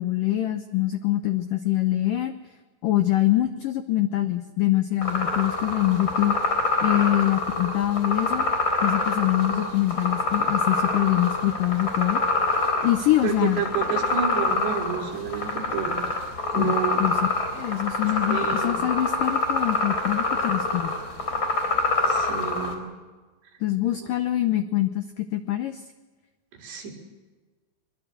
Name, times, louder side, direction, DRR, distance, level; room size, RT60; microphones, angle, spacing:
voice 1, 0.0-2.3 2.8-6.4 6.8-8.5 8.8-12.2 12.8-13.6 16.6-16.7 17.0-17.2 17.5-20.9 23.6-25.8, left 14 dB, 90° left, 9 dB, 1.8 m, -24 dB
sound 1, 5.0-22.7, left 3 dB, 20° left, 3.9 m, -26 dB
voice 2, 13.2-16.2 16.5-17.0 18.3-18.8 22.0-22.8 24.0-24.1 26.5-26.9, right 7 dB, 70° right, 0 dB, 6.3 m, -30 dB
23.0 x 23.0 x 7.9 m, 1.3 s
omnidirectional pair, 5.2 m